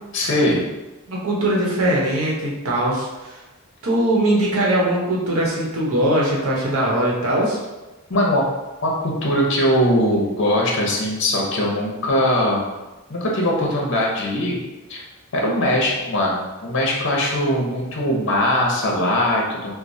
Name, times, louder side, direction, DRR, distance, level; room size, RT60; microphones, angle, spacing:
voice 1, 0.1-0.6 8.1-8.5 8.8-12.6 13.1-14.6 14.9-15.0 15.3-19.7, left 1 dB, 55° left, -2 dB, 0.8 m, -20 dB
voice 2, 1.1-3.4 3.8-7.6, right 1 dB, 70° right, -3 dB, 0.9 m, -21 dB
4.6 x 2.0 x 2.6 m, 1.1 s
head